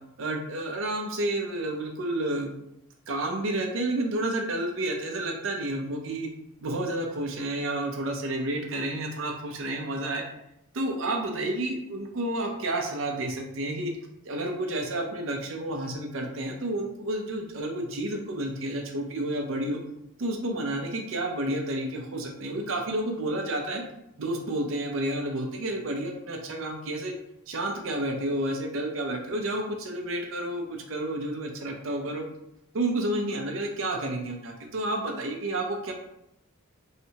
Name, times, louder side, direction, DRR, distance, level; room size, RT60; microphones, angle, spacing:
voice 1, 0.2-2.5 3.1-6.3 6.6-10.2 10.7-13.9 14.2-19.8 20.2-23.8 24.2-27.1 27.5-32.2 32.7-35.9, right 1 dB, 60° right, 2 dB, 0.5 m, -30 dB
3.2 x 2.7 x 2.8 m, 0.81 s
head